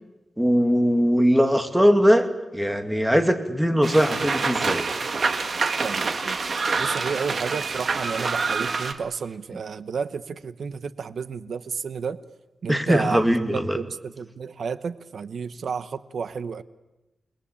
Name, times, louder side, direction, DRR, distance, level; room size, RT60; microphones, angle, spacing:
voice 1, 0.4-4.9 12.7-13.8, equal, 5° right, 2.4 m, -20 dB
sound 1, 3.8-8.9, right 4 dB, 55° right, 2.1 m, -26 dB
voice 2, 5.8-6.4 6.8-12.2 12.6-13.2 13.7-16.6, right 6 dB, 75° right, 1.0 m, -31 dB
29.0 x 21.0 x 8.6 m
wide cardioid pair, 125°, 0 cm